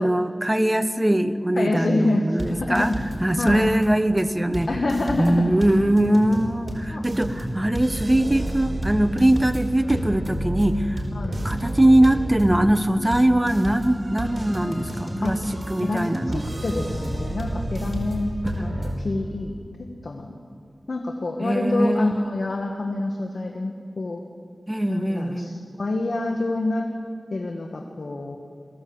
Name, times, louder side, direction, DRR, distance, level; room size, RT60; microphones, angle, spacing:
voice 1, 0.0-2.9 3.2-4.7 5.2-11.0 11.4-15.4 15.7-16.5 18.6-18.7 21.4-22.3 24.7-25.6, right 1 dB, 20° right, 11 dB, 1.0 m, -21 dB
voice 2, 1.6-2.9 3.4-3.7 4.7-5.5 6.7-7.1 11.1-11.4 15.2-15.4 15.8-19.5 20.0-20.4 20.9-24.2 24.9-26.9 27.3-28.4, left 2 dB, 70° left, 3 dB, 1.5 m, -27 dB
sound 1, 2.4-3.2 3.5-3.9 4.2-4.3 4.5-18.9, right 1 dB, 45° right, 4.6 m, -31 dB
22.0 x 15.5 x 7.9 m, 2.3 s
cardioid pair, 40°, 0 cm